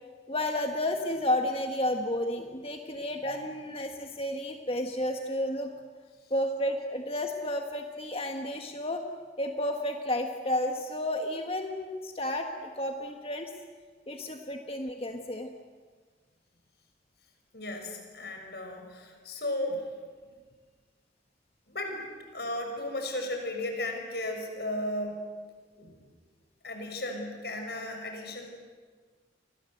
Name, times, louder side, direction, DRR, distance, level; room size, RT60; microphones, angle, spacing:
voice 1, 0.3-5.7 6.3-9.0 9.4-12.5 12.7-13.5 14.1-15.5, left 1 dB, 30° left, 4 dB, 1.6 m, -31 dB
voice 2, 17.5-19.9 21.7-22.0 22.3-25.3 25.8-25.9 26.6-28.5, left 1 dB, 60° left, 3 dB, 6.4 m, -35 dB
30.0 x 24.0 x 8.0 m, 1.5 s
head